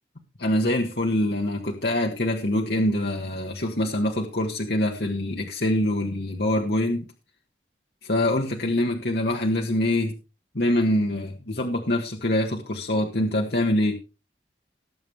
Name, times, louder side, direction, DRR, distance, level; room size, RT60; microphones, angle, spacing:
voice 1, 0.4-7.0 8.0-10.1 10.5-14.0, left 1 dB, 65° left, 1 dB, 1.7 m, -24 dB
19.0 x 7.2 x 3.4 m, 0.30 s
head